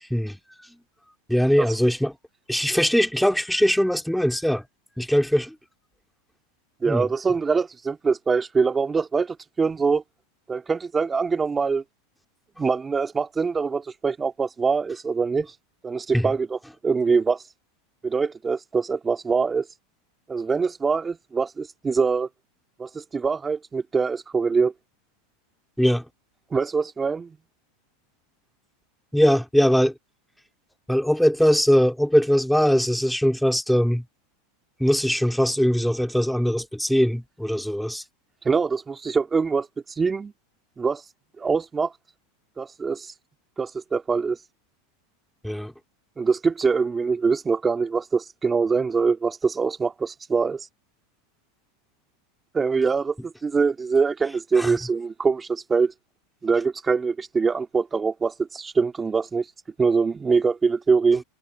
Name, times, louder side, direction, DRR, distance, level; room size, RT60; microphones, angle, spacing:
voice 1, 1.3-2.1 2.5-4.6 5.0-5.5 6.9-7.1 16.1-16.3 25.8-26.0 29.1-29.9 30.9-34.0 34.8-38.0 45.4-45.7 54.6-54.8, equal, ahead, 4.2 m, -21 dB
voice 2, 6.8-10.0 10.5-11.8 12.6-15.5 15.8-16.6 16.8-17.4 18.0-19.7 20.3-22.3 22.8-24.7 26.5-27.4 38.4-39.7 40.0-40.3 40.8-41.0 41.4-41.9 42.6-43.1 43.6-44.4 46.2-50.7 52.5-55.9 56.4-59.4 59.8-61.2, right 5 dB, 20° right, 3.3 m, -23 dB
hypercardioid pair, 100°, 0 cm